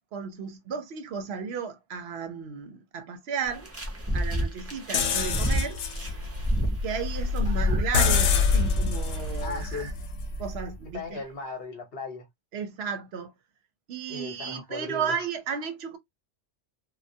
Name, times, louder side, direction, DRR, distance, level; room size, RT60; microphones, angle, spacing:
voice 1, 0.1-3.7 4.1-5.8 6.8-9.9 10.4-11.2 12.5-13.3 13.9-16.0, right 6 dB, 70° right, 0.8 m, -34 dB
sound 1, 3.5-9.4, equal, 20° right, 0.4 m, -30 dB
sound 2, 4.9-10.7, left 6 dB, 80° left, 0.9 m, -27 dB
voice 2, 7.4-7.8 9.4-9.9 10.9-12.3 14.1-15.1, left 3 dB, 60° left, 1.0 m, -37 dB
2.2 x 2.1 x 2.6 m
omnidirectional pair, 1.2 m